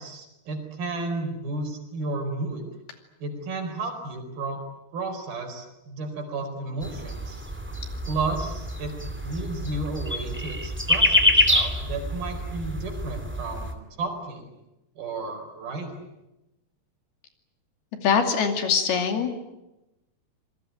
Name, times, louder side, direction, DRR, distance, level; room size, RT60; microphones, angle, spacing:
voice 1, 0.0-2.6 3.2-4.6 4.9-7.4 8.1-14.5 15.0-16.0, right 3 dB, 65° right, 5 dB, 6.2 m, -33 dB
sound 1, 6.8-13.7, left 1 dB, 5° right, 1.5 m, -26 dB
voice 2, 18.0-19.4, left 6 dB, 70° left, 6 dB, 4.5 m, -23 dB
27.0 x 21.0 x 9.4 m, 0.95 s
omnidirectional pair, 4.6 m